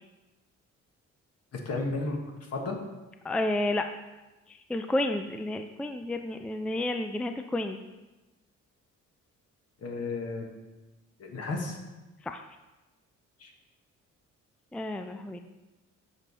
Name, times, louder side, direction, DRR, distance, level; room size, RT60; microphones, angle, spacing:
voice 1, 1.5-2.8 9.8-10.4 11.2-11.8 13.4-13.5, left 3 dB, 55° left, 2 dB, 1.5 m, -33 dB
voice 2, 3.2-3.8 4.5-7.8 12.2-12.4 14.7-15.4, left 1 dB, 5° left, 7 dB, 0.3 m, -31 dB
7.1 x 5.4 x 4.1 m, 1.1 s
cardioid pair, 90°, 30 cm